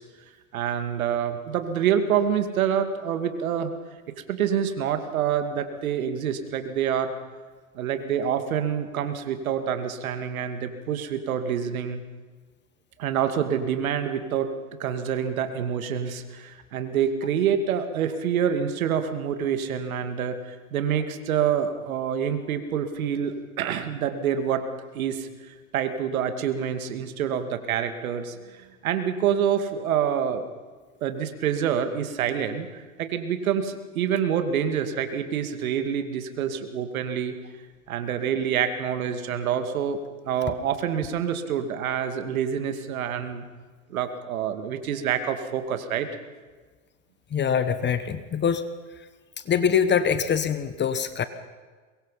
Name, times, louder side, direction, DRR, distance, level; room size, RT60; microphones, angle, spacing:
voice 1, 0.5-3.7 4.3-7.1 7.7-12.0 13.0-14.5 14.8-24.7 24.9-30.5 31.0-37.4 37.9-40.0 40.3-43.4 43.9-46.1, right 8 dB, 75° right, 8 dB, 2.4 m, -27 dB
voice 2, 47.3-48.6 49.5-51.3, left 7 dB, 25° left, 12 dB, 1.2 m, -23 dB
23.0 x 22.0 x 5.7 m, 1.4 s
hypercardioid pair, 100°, 42 cm